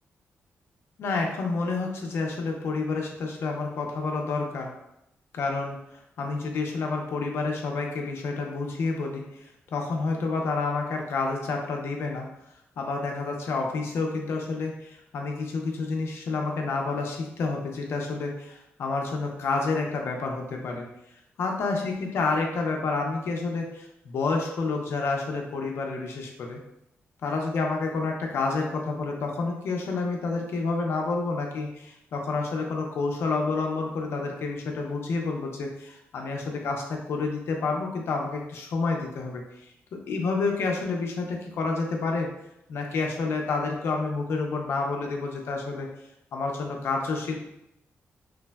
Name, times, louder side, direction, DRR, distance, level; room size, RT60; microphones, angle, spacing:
voice 1, 1.0-4.7 5.3-9.4 9.7-12.3 12.8-20.9 21.4-26.6 27.2-39.7 40.1-42.3 42.7-45.9 46.3-47.4, left 3 dB, 65° left, 1 dB, 0.5 m, -29 dB
3.2 x 2.0 x 2.2 m, 0.82 s
wide cardioid pair, 165°, 5 cm